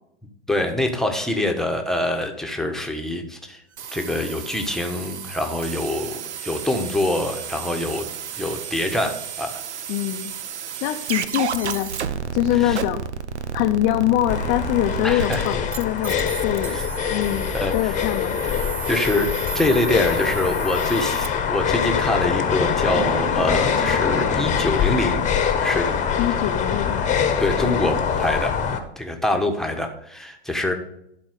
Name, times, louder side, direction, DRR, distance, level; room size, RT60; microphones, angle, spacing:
voice 1, 0.5-3.6 3.9-8.1 8.3-9.6 12.5-12.8 15.0-15.6 16.7-16.8 17.5-17.9 18.4-18.5 18.9-25.3 25.6-26.0 27.4-28.5 29.0-30.7, left 1 dB, ahead, 3 dB, 1.3 m, -25 dB
sound 1, 3.8-21.3, right 7 dB, 85° right, 0.8 m, -32 dB
voice 2, 9.9-10.3 10.8-11.9 12.3-13.0 13.5-16.8 17.1-18.4 26.2-27.0, left 14 dB, 40° left, 4 dB, 0.7 m, -23 dB
sound 2, 14.3-28.8, left 7 dB, 20° left, 1.2 m, -23 dB
11.5 x 4.3 x 6.6 m, 0.77 s
hypercardioid pair, 105°, 34 cm